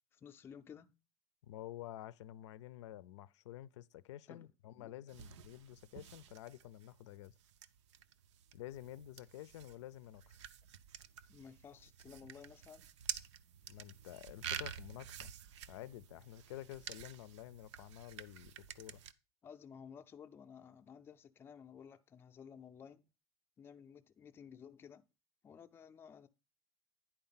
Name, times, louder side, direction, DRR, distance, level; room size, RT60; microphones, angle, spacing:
voice 1, 0.1-0.9 4.3-4.5 4.8-4.9 11.3-12.9 19.4-23.0 23.6-25.0 25.4-26.3, left 7 dB, 15° left, 0.4 m, -55 dB
voice 2, 1.4-7.3 8.5-10.4 13.7-15.3 15.7-19.0, left 13 dB, 90° left, 0.5 m, -50 dB
sound 1, 5.1-19.1, right 9 dB, 90° right, 0.6 m, -49 dB
9.9 x 4.4 x 5.6 m
supercardioid pair, 155°, 15 cm